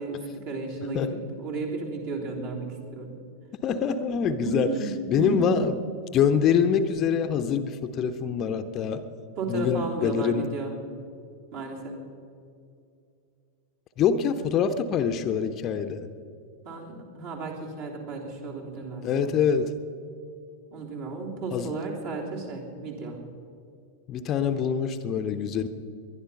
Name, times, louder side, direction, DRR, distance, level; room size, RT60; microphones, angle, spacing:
voice 1, 0.0-3.2 4.4-5.7 9.4-10.7 11.5-12.0 16.6-19.4 20.7-23.2, right 3 dB, 50° right, -1 dB, 3.4 m, -33 dB
voice 2, 3.6-4.7 5.1-5.7 6.1-9.0 9.5-10.5 14.0-16.1 19.0-19.7 21.5-21.7 24.1-25.7, left 7 dB, 35° left, 9 dB, 0.8 m, -25 dB
21.0 x 11.5 x 5.5 m, 2.4 s
figure-of-eight pair, 90°, 0 cm